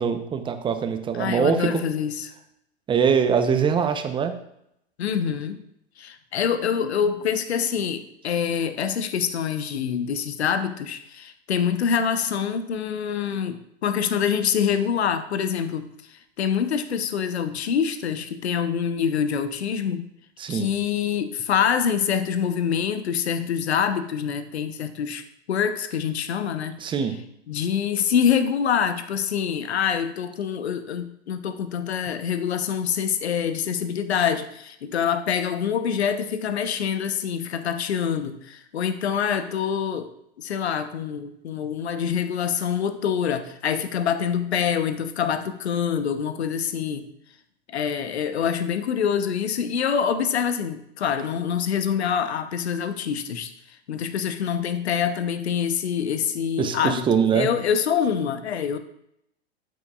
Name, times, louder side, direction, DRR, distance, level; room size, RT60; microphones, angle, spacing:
voice 1, 0.0-1.8 2.9-4.3 20.4-20.7 26.8-27.2 56.6-57.5, right 7 dB, 15° right, 8 dB, 0.7 m, -23 dB
voice 2, 1.2-2.3 5.0-5.6 6.0-20.1 20.5-26.8 27.5-40.1 40.4-47.1 47.7-53.5 53.9-58.8, left 7 dB, 75° left, 10 dB, 0.9 m, -25 dB
12.5 x 6.2 x 2.4 m, 0.76 s
hypercardioid pair, 110°, 32 cm